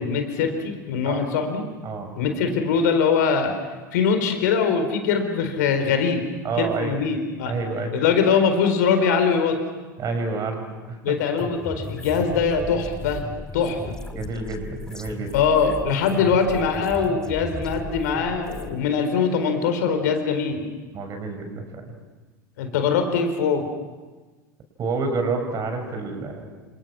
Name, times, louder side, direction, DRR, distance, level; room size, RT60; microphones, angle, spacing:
voice 1, 0.0-1.6 2.2-3.5 3.9-6.2 6.6-7.5 7.9-9.6 11.0-13.2 13.5-13.9 15.3-20.6 22.6-23.7, left 6 dB, 60° left, 6 dB, 4.3 m, -22 dB
voice 2, 6.4-7.0 7.5-8.0 10.0-10.6 10.9-11.1 14.1-15.3 20.9-21.9 24.8-26.5, right 4 dB, 35° right, 5 dB, 6.6 m, -28 dB
sound 1, 11.4-18.7, left 2 dB, 5° left, 2.3 m, -36 dB
29.0 x 27.0 x 6.2 m, 1.3 s
figure-of-eight pair, 80°, 11 cm